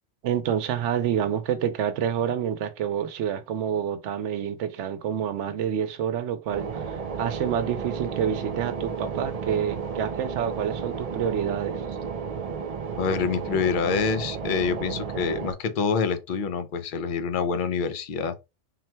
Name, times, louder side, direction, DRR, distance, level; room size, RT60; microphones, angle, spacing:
voice 1, 0.2-12.0, right 9 dB, 85° right, 0.9 m, -28 dB
sound 1, 6.5-15.5, right 6 dB, 55° right, 0.4 m, -33 dB
voice 2, 13.0-18.4, left 5 dB, 55° left, 0.6 m, -26 dB
3.9 x 2.2 x 4.3 m
omnidirectional pair, 1.2 m